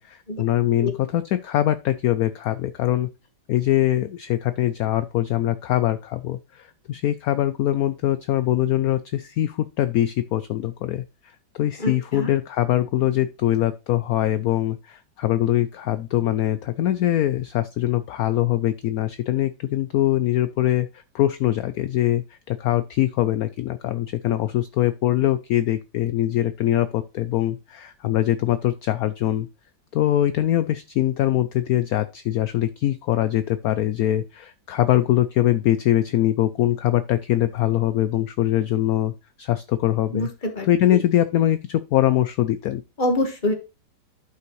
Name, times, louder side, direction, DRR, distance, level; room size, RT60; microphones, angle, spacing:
voice 1, 0.0-3.1 3.5-11.0 11.5-29.5 29.9-39.1 39.4-40.3 40.7-42.8, left 13 dB, 80° left, 13 dB, 0.8 m, -22 dB
voice 2, 11.8-12.3 40.1-40.3 40.5-41.0 43.0-43.5, left 1 dB, 25° left, 4 dB, 1.6 m, -25 dB
11.5 x 5.7 x 3.1 m, 0.29 s
omnidirectional pair, 2.0 m